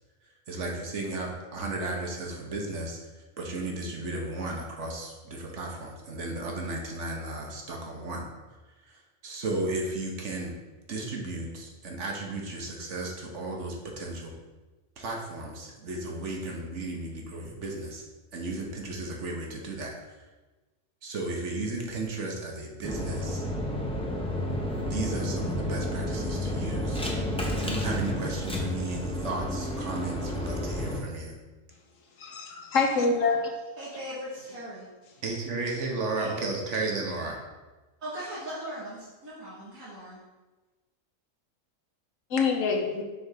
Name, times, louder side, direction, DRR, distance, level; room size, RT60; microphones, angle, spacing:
voice 1, 0.5-3.0 3.4-8.3 8.8-10.6 10.9-14.3 15.0-18.0 18.3-20.0 21.0-23.4 24.7-27.0 27.5-31.4 35.2-37.4, right 2 dB, 65° right, 0 dB, 1.4 m, -34 dB
sound 1, 22.8-31.0, left 1 dB, 5° left, 0.6 m, -31 dB
voice 2, 32.2-33.5 42.3-43.0, left 4 dB, 75° left, 2 dB, 1.3 m, -25 dB
voice 3, 33.8-34.9 36.2-36.5 38.0-40.2, equal, 80° right, -10 dB, 2.0 m, -39 dB
6.2 x 3.5 x 5.7 m, 1.2 s
omnidirectional pair, 1.4 m